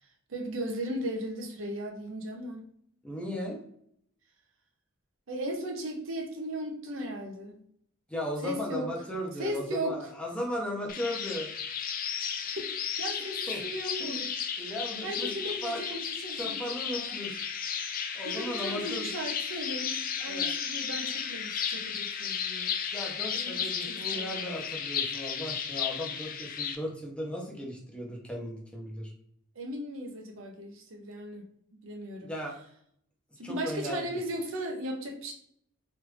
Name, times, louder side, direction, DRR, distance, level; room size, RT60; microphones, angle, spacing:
voice 1, 0.3-2.7 5.3-7.6 8.4-8.9 9.4-10.1 12.1-12.7 13.0-14.3 15.0-17.2 18.2-22.7 23.3-24.6 29.6-31.5 31.8-32.3 33.4-35.3, right 1 dB, 70° right, 2 dB, 0.7 m, -37 dB
voice 2, 3.0-3.6 8.1-11.5 13.2-13.6 14.0-14.2 14.6-15.8 16.4-17.4 18.1-19.1 20.3-20.5 22.9-29.1 32.2-32.5 33.4-34.2, equal, 5° left, -1 dB, 0.7 m, -36 dB
sound 1, 10.9-26.7, left 7 dB, 45° left, 0.4 m, -34 dB
3.2 x 2.5 x 3.2 m, 0.68 s
head